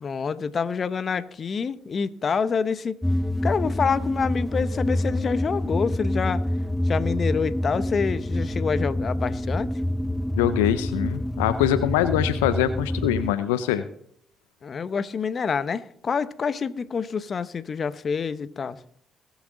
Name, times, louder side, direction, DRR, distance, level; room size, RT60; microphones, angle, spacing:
voice 1, 0.0-3.0 3.4-6.5 6.8-9.7 14.6-18.8, left 6 dB, 50° left, 0.8 m, -27 dB
sound 1, 3.0-13.3, left 1 dB, 5° left, 0.7 m, -27 dB
voice 2, 10.4-13.8, left 12 dB, 90° left, 0.5 m, -23 dB
21.0 x 7.3 x 3.9 m
hypercardioid pair, 50°, 0 cm